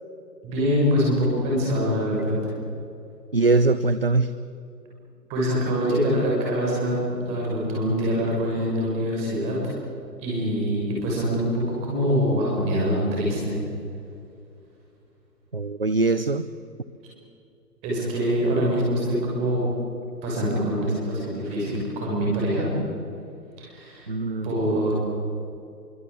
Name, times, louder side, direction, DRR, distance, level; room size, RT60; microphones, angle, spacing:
voice 1, 0.4-2.5 5.3-9.7 10.2-13.6 17.8-19.6 20.2-22.7 23.6-24.1 24.4-24.9, equal, 15° right, -4 dB, 6.6 m, -24 dB
voice 2, 3.3-4.3 15.5-16.5 24.1-24.5, right 3 dB, 35° right, 14 dB, 0.5 m, -22 dB
24.5 x 24.0 x 8.5 m, 2.6 s
hypercardioid pair, 170°, 49 cm